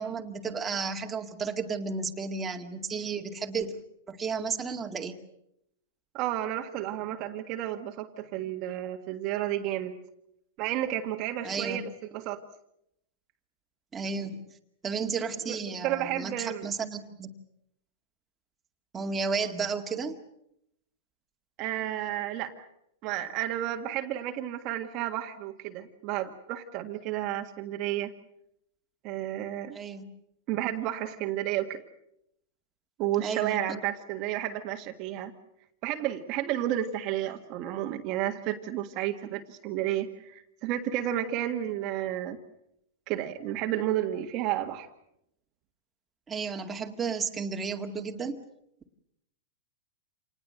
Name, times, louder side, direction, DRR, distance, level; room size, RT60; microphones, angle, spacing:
voice 1, 0.0-3.7 4.1-5.2 11.4-11.8 13.9-14.4 14.8-17.3 18.9-20.2 29.7-30.1 33.2-33.8 46.3-48.4, right 5 dB, 15° right, 3 dB, 2.1 m, -33 dB
voice 2, 6.1-9.9 10.6-12.4 15.5-15.6 15.8-16.7 21.6-22.7 23.0-28.1 29.0-29.8 30.5-31.8 33.0-35.3 35.8-42.4 43.1-44.9, right 12 dB, 40° right, 4 dB, 1.7 m, -31 dB
27.5 x 19.5 x 7.8 m, 0.78 s
hypercardioid pair, 140°, 0 cm